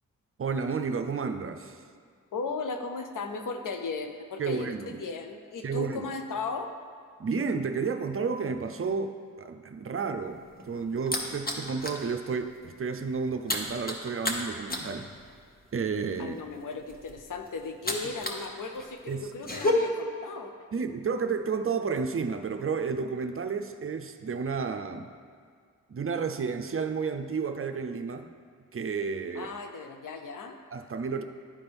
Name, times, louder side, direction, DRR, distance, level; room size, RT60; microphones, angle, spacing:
voice 1, 0.4-1.8 4.4-5.0 5.6-6.1 7.2-15.1 15.7-16.4 19.1-19.3 20.7-25.1 25.9-28.3 28.7-29.5 30.7-31.2, right 5 dB, 40° right, 7 dB, 0.5 m, -31 dB
voice 2, 2.3-6.7 16.2-20.5 29.3-30.6, left 4 dB, 70° left, 5 dB, 0.7 m, -36 dB
sound 1, 10.3-12.1 12.4-12.6 12.9-18.5 18.8-19.7, left 1 dB, 25° left, 1.1 m, -33 dB
11.5 x 4.3 x 3.4 m, 2.1 s
cardioid pair, 50°, 33 cm